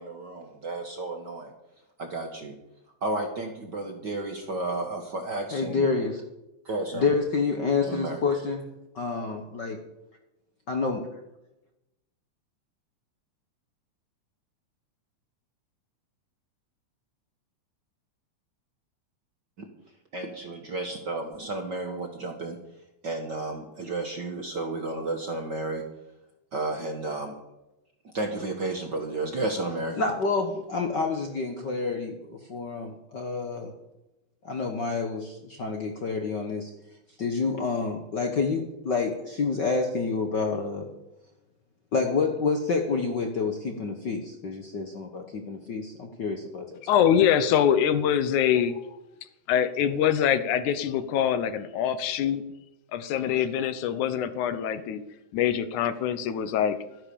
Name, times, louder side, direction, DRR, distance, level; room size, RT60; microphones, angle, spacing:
voice 1, 0.0-1.5 2.0-2.5 3.0-5.9 6.6-7.1 7.9-8.2 20.1-22.6 23.0-25.8 26.5-27.3 28.1-30.0, right 2 dB, 50° right, 4 dB, 1.5 m, -32 dB
voice 2, 5.5-6.2 6.9-8.6 8.9-9.8 10.7-11.1 30.0-33.7 34.4-36.7 37.2-40.9 41.9-46.8, left 4 dB, 55° left, 4 dB, 1.3 m, -28 dB
voice 3, 46.9-49.0 49.5-52.4 52.9-55.0 55.3-56.8, left 9 dB, 80° left, 12 dB, 2.3 m, -24 dB
13.0 x 10.0 x 6.9 m, 0.94 s
omnidirectional pair, 3.5 m